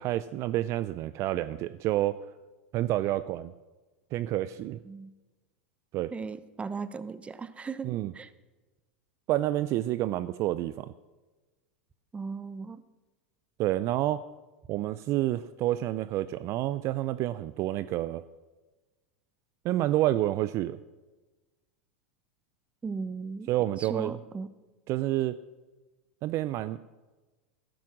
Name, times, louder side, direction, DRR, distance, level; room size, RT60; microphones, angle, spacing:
voice 1, 0.0-2.2 2.7-3.5 4.1-4.8 5.9-6.1 7.8-8.1 9.3-10.9 13.6-14.2 14.7-18.2 19.6-20.8 23.5-24.1 24.9-25.4 26.2-26.8, right 14 dB, 45° right, 16 dB, 0.5 m, -29 dB
voice 2, 6.1-8.3 12.1-12.8 22.8-23.5 23.8-24.5, right 5 dB, 15° right, 15 dB, 0.8 m, -37 dB
13.5 x 12.0 x 6.2 m, 1.2 s
hypercardioid pair, 105°, 7 cm